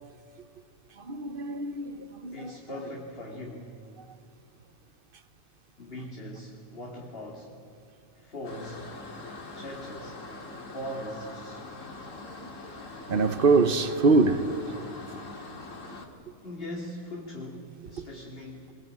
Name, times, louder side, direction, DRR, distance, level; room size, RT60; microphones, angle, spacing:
voice 1, 1.0-2.5 12.2-12.5 13.1-14.9 18.0-18.1, right 3 dB, 40° right, 1.1 m, -25 dB
voice 2, 2.3-3.7 5.8-7.5 8.2-8.9 9.5-10.2 10.7-11.7 16.4-18.7, left 1 dB, 40° left, 2.7 m, -40 dB
sound 1, 8.4-16.1, left 3 dB, 60° left, 2.6 m, -43 dB
25.5 x 22.0 x 9.4 m
omnidirectional pair, 1.5 m